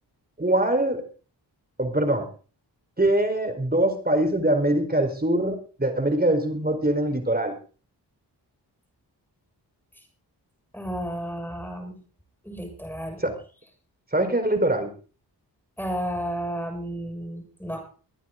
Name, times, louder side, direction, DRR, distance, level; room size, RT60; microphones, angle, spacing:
voice 1, 0.4-1.0 1.8-2.3 3.0-7.5 13.2-13.4 14.1-14.9, right 1 dB, 20° right, 7 dB, 4.5 m, -23 dB
voice 2, 10.7-11.9 12.4-13.2 15.8-17.8, equal, 5° left, 4 dB, 7.0 m, -32 dB
23.5 x 9.3 x 3.9 m, 0.37 s
cardioid pair, 45°, 43 cm